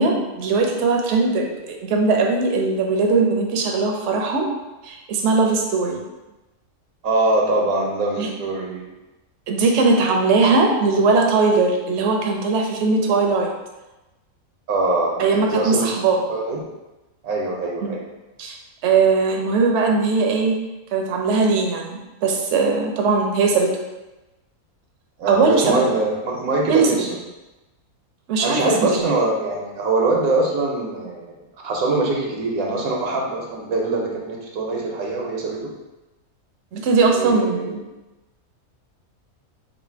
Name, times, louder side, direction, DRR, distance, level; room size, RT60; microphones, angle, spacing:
voice 1, 0.0-4.5 4.8-6.0 8.2-8.3 9.5-13.5 15.2-16.2 17.8-17.9 18.4-18.6 18.8-20.6 20.9-23.8 25.3-25.8 26.7-27.0 28.3-29.1 36.7-37.8, right 4 dB, 65° right, 1 dB, 0.8 m, -19 dB
voice 2, 7.0-8.9 14.7-15.9 16.3-16.6 17.2-18.0 25.2-27.2 28.4-31.4 31.6-35.6 37.1-37.8, right 2 dB, 85° right, -1 dB, 1.2 m, -23 dB
3.3 x 2.5 x 4.4 m, 1.0 s
omnidirectional pair, 1.5 m